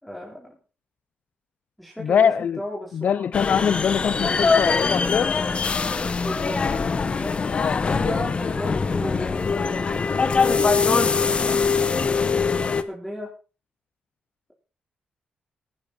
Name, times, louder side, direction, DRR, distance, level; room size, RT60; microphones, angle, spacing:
voice 1, 0.0-0.6 1.8-3.2 6.2-7.3 8.0-10.1 10.4-12.3 12.6-13.3, equal, ahead, -3 dB, 4.1 m, -35 dB
voice 2, 2.0-2.6 2.9-5.3 7.5-8.5, left 7 dB, 60° left, 17 dB, 0.6 m, -23 dB
sound 1, 3.3-12.8, left 5 dB, 35° left, 1.1 m, -22 dB
17.5 x 10.5 x 4.3 m, 0.35 s
cardioid pair, 105°, 3 cm